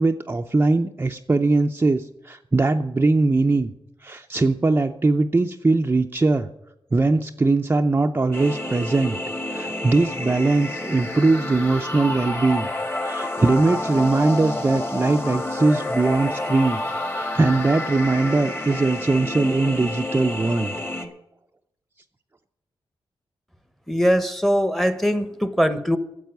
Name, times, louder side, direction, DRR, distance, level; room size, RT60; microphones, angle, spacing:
voice 1, 0.0-3.7 4.0-6.5 6.9-9.2 9.5-12.7 13.0-16.8 17.1-20.7, right 3 dB, 20° right, 4 dB, 0.5 m, -21 dB
sound 1, 8.3-21.1, left 1 dB, 20° left, 1.6 m, -29 dB
voice 2, 23.9-26.0, equal, ahead, 12 dB, 1.0 m, -21 dB
10.0 x 7.4 x 9.4 m, 0.85 s
wide cardioid pair, 115°, 10 cm